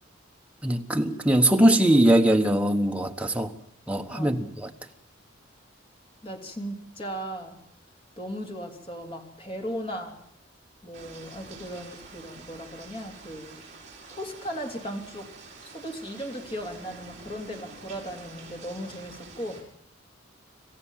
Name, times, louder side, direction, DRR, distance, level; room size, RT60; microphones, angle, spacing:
voice 1, 0.6-3.5 3.9-4.7, right 1 dB, 5° right, 3 dB, 1.4 m, -21 dB
voice 2, 4.1-4.4 6.2-7.6 8.2-10.2 10.8-13.6 14.1-15.3 15.6-19.6, equal, 30° left, 2 dB, 3.4 m, -37 dB
sound 1, 10.9-19.6, right 4 dB, 40° right, 5.8 m, -47 dB
27.0 x 15.0 x 7.5 m, 0.69 s
head